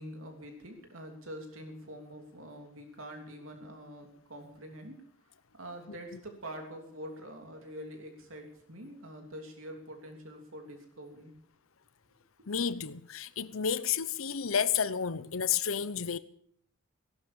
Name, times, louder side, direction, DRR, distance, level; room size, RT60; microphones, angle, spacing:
voice 1, 0.0-5.0 5.5-11.3 12.4-12.5, equal, 80° right, 3.1 m, -45 dB
voice 2, 12.5-16.2, left 7 dB, 90° left, 0.9 m, -31 dB
17.5 x 12.0 x 7.0 m
head